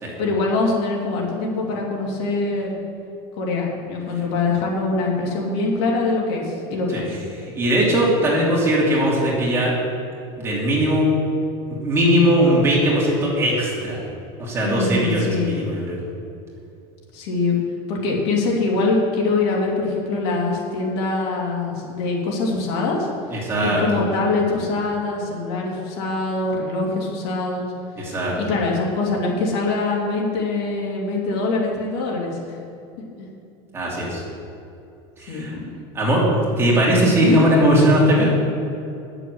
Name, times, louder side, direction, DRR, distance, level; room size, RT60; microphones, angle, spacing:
voice 1, 0.2-2.8 3.4-7.1 14.6-15.7 17.1-17.6 17.9-23.1 23.6-27.7 28.0-32.6 33.2-33.3 35.3-35.7 37.2-37.4, left 3 dB, 70° left, -2 dB, 3.0 m, -23 dB
voice 2, 7.6-9.7 10.4-11.1 11.8-14.0 14.4-16.0 23.3-23.8 28.0-28.3 33.7-34.2 35.2-35.5 35.9-36.2 36.6-38.3, equal, 20° right, -5 dB, 2.8 m, -19 dB
10.5 x 7.0 x 8.1 m, 2.7 s
cardioid pair, 165°, 14 cm